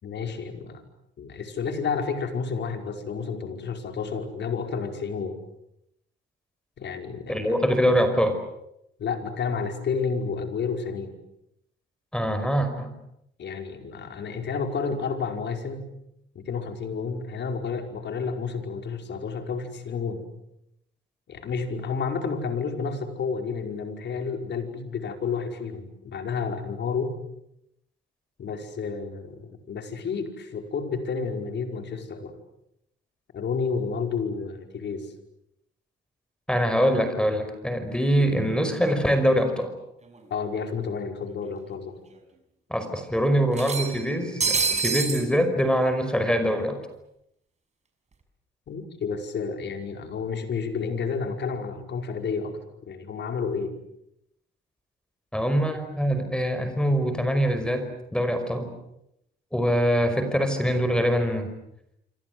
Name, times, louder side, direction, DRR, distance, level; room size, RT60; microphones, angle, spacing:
voice 1, 0.0-0.8 1.2-5.4 6.8-7.6 9.0-11.1 13.4-15.9 16.4-20.2 21.3-27.2 28.4-32.3 33.3-35.1 40.3-42.0 48.7-53.7, left 5 dB, 60° left, 5 dB, 5.4 m, -30 dB
voice 2, 7.3-8.4 12.1-12.9 36.5-39.7 42.7-46.8 55.3-58.7 59.5-61.5, equal, 5° left, 8 dB, 5.3 m, -24 dB
sound 1, 40.1-40.2 40.5-40.6 41.7-41.8 42.1-42.2 43.5-45.3, right 4 dB, 35° right, 6.0 m, -27 dB
26.5 x 26.5 x 8.0 m, 0.79 s
cardioid pair, 90°, 20 cm